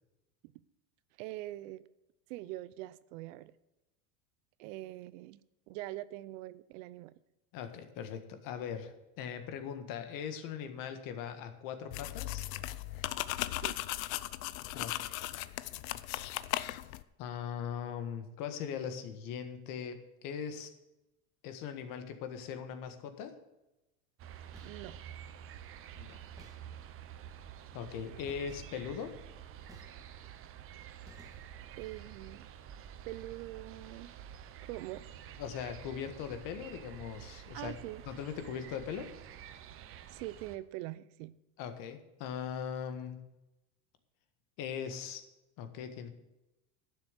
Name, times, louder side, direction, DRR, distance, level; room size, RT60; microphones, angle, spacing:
voice 1, 1.2-1.8 2.3-3.5 4.6-5.4 5.7-7.2 13.6-13.8 24.6-25.0 31.8-32.5 33.0-34.1 34.6-35.4 37.5-38.0 40.1-41.3, right 16 dB, 65° right, 17 dB, 0.7 m, -43 dB
voice 2, 7.5-12.5 14.7-14.9 17.2-20.7 21.4-23.4 26.0-26.2 27.7-29.2 35.4-37.7 38.1-39.1 41.6-43.2 44.6-45.3 45.6-46.1, left 8 dB, 50° left, 8 dB, 1.7 m, -40 dB
sound 1, 11.9-17.0, left 16 dB, 75° left, 0.7 m, -37 dB
sound 2, 24.2-40.6, right 9 dB, 30° right, 0.8 m, -49 dB
sound 3, 24.5-25.0 26.4-27.1 28.2-30.4 31.1-31.8, right 1 dB, 10° right, 1.7 m, -58 dB
11.5 x 7.2 x 8.2 m, 0.95 s
supercardioid pair, 140°, 42 cm